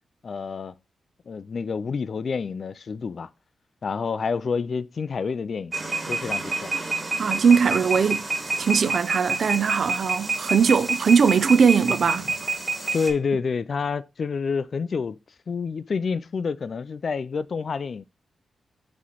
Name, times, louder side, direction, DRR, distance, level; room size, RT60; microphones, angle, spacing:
voice 1, 0.2-0.7 1.3-3.3 3.8-5.7 6.1-6.7 12.9-15.2 15.5-18.0, left 5 dB, 50° left, 0.3 m, -28 dB
sound 1, 5.7-13.1, right 3 dB, 20° right, 1.6 m, -28 dB
voice 2, 7.2-8.3 8.6-12.5, right 6 dB, 55° right, 0.5 m, -20 dB
6.1 x 3.1 x 5.7 m
wide cardioid pair, 125°, 0 cm